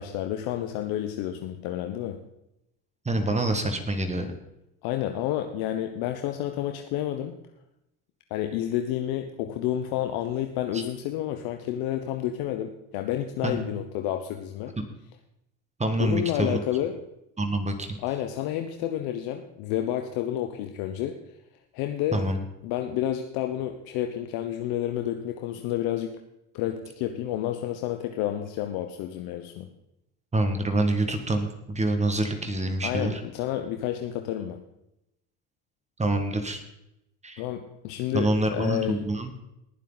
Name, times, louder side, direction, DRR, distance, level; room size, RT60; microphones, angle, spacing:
voice 1, 0.0-2.2 4.8-7.3 8.3-14.7 16.0-17.0 18.0-21.2 21.7-22.2 22.6-26.2 26.5-29.7 32.8-34.6 37.4-39.1, left 11 dB, 70° left, 6 dB, 1.2 m, -30 dB
voice 2, 3.1-4.3 10.7-10.8 13.4-13.6 15.8-16.6 17.4-17.9 22.1-22.4 30.3-33.2 36.0-36.6 37.2-37.4 38.1-39.3, right 2 dB, 20° right, 6 dB, 2.0 m, -26 dB
20.0 x 7.4 x 4.1 m, 0.84 s
supercardioid pair, 95°, 38 cm